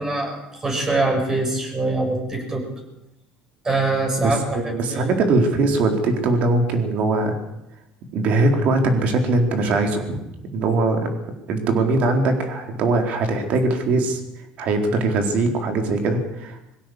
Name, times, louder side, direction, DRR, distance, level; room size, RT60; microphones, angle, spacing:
voice 1, 0.0-2.7 3.6-5.1, right 2 dB, 25° right, 2 dB, 6.9 m, -24 dB
voice 2, 4.2-7.4 8.1-10.2 10.5-11.1 11.5-14.2 14.6-16.7, right 2 dB, 60° right, 4 dB, 4.3 m, -21 dB
21.0 x 16.0 x 8.1 m, 0.88 s
supercardioid pair, 95°, 3 cm